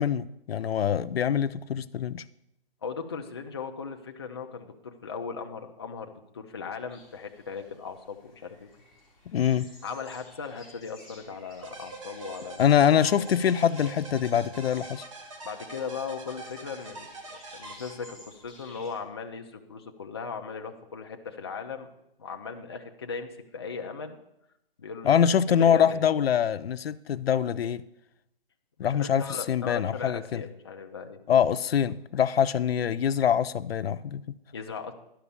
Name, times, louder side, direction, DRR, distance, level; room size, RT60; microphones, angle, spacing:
voice 1, 0.0-2.2 9.3-9.7 12.6-15.0 25.0-27.8 28.8-30.4 31.3-34.3, left 8 dB, 85° left, 0.5 m, -24 dB
voice 2, 2.8-8.7 9.8-12.6 15.4-21.9 22.2-24.2 24.8-25.4 25.7-26.0 28.8-31.2 34.5-34.9, left 5 dB, 25° left, 0.5 m, -38 dB
sound 1, 6.9-18.9, left 1 dB, ahead, 2.8 m, -55 dB
sound 2, 11.6-18.5, right 3 dB, 35° right, 1.2 m, -44 dB
11.5 x 5.1 x 6.9 m
hypercardioid pair, 165°, 30 cm